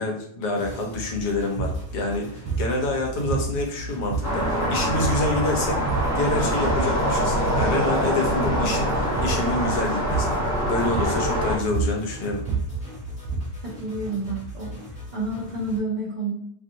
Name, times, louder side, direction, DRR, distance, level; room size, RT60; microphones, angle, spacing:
voice 1, 0.0-10.4 10.7-12.5, left 2 dB, 80° left, 1 dB, 1.3 m, -27 dB
sound 1, 0.6-15.8, left 1 dB, 35° left, 1.2 m, -38 dB
sound 2, 1.6-1.8 2.5-2.8 3.3-3.8 4.1-4.6 5.0-5.3 5.7-6.2 6.7-7.0 7.3-7.9 8.3-8.7 9.2-9.5 10.1-10.5 10.9-11.3 11.6-13.6, right 5 dB, 80° right, 1.2 m, -29 dB
sound 3, 4.2-11.6, equal, 15° left, 0.7 m, -24 dB
voice 2, 13.6-14.8 15.1-16.3, right 2 dB, 60° right, -6 dB, 0.4 m, -29 dB
3.0 x 2.6 x 2.6 m, 0.69 s
omnidirectional pair, 1.7 m